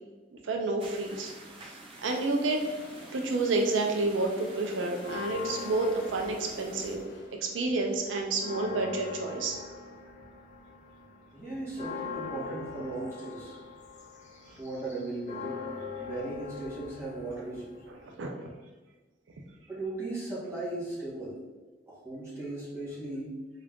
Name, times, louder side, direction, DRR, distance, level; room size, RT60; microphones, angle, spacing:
voice 1, 0.4-1.3 1.6-2.6 3.1-7.1 7.4-9.6 18.0-18.3, right 2 dB, 85° right, 2 dB, 0.4 m, -29 dB
sound 1, 0.8-7.0, right 2 dB, 30° right, 0.5 m, -49 dB
Toilet flush, 2.5-7.7, left 1 dB, 90° left, 0.7 m, -50 dB
sound 2, 5.0-7.4 7.7-18.2, left 5 dB, 40° left, 0.5 m, -42 dB
voice 2, 11.3-13.6 14.6-15.6 16.0-17.8 19.7-21.4 21.9-23.3, right 2 dB, 15° right, -8 dB, 1.3 m, -37 dB
3.7 x 2.4 x 3.4 m, 1.3 s
head